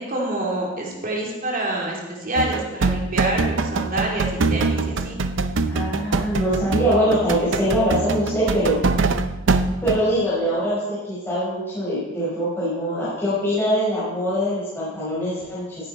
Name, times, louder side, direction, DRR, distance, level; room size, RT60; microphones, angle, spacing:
voice 1, 0.0-5.2, right 1 dB, 45° right, -2 dB, 3.1 m, -27 dB
sound 1, 2.4-10.0, right 3 dB, 70° right, 0.6 m, -23 dB
voice 2, 5.7-8.8 9.8-15.6, equal, 10° left, -11 dB, 5.3 m, -23 dB
15.0 x 9.3 x 4.5 m, 1.1 s
head